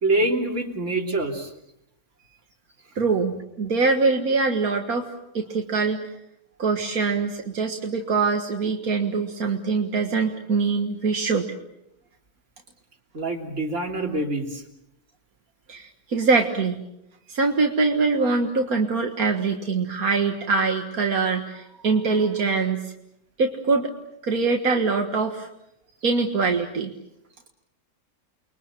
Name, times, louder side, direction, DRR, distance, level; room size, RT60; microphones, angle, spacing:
voice 1, 0.0-1.5 13.1-14.6, right 2 dB, 55° right, 2 dB, 3.6 m, -25 dB
voice 2, 3.0-5.1 5.3-6.1 6.6-11.5 15.7-16.8 17.3-22.9 23.4-23.9 24.2-25.5 26.0-26.9, right 4 dB, 80° right, 3 dB, 2.1 m, -23 dB
30.0 x 22.5 x 7.6 m, 0.83 s
omnidirectional pair, 1.5 m